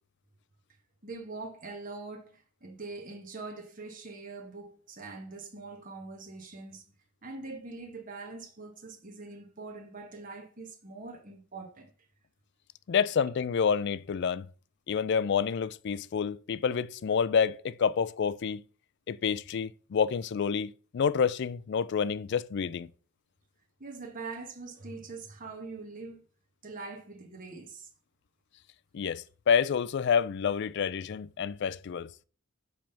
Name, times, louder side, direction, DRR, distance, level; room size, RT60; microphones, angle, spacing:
voice 1, 1.0-6.9 7.2-11.9 23.8-26.2 26.6-27.9, right 3 dB, 40° right, 1.5 m, -43 dB
voice 2, 12.9-14.5 14.9-18.6 19.1-22.9 28.9-32.1, left 6 dB, 55° left, 0.3 m, -28 dB
7.6 x 3.5 x 5.8 m
head